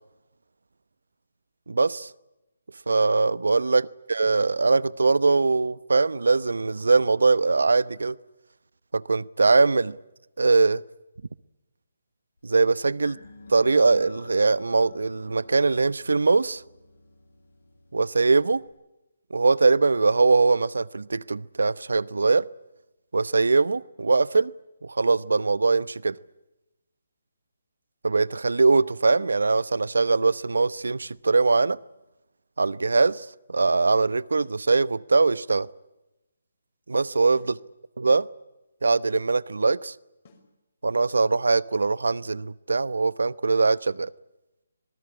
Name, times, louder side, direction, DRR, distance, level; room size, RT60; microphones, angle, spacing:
voice 1, 1.7-2.1 2.9-3.8 4.1-8.2 8.9-10.0 10.4-10.8 12.4-13.2 13.5-16.6 17.9-18.6 19.3-22.5 23.1-24.5 24.8-26.2 28.0-31.8 32.6-35.7 36.9-37.4 38.0-38.2 38.8-39.9 40.8-44.1, right 3 dB, 85° right, 0.9 m, -22 dB
sound 1, 13.0-18.7, left 2 dB, 75° left, 7.6 m, -48 dB
sound 2, 34.4-34.7 37.4-37.7 40.2-40.5, left 3 dB, 40° left, 6.0 m, -56 dB
26.0 x 19.0 x 9.9 m
hypercardioid pair, 160°, 0 cm